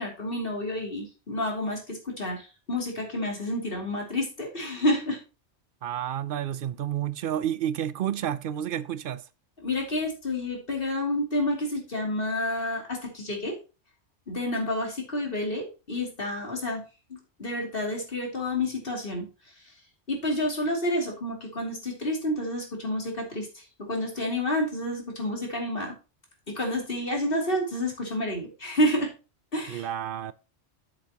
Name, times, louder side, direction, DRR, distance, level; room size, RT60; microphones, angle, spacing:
voice 1, 0.0-5.2 9.6-13.6 14.3-16.8 17.1-19.3 20.1-25.9 26.5-29.1 29.5-29.9, left 1 dB, 55° left, 3.0 m, -29 dB
voice 2, 5.8-9.3 29.7-30.3, right 10 dB, 60° right, 0.7 m, -30 dB
10.5 x 7.9 x 2.9 m
omnidirectional pair, 1.2 m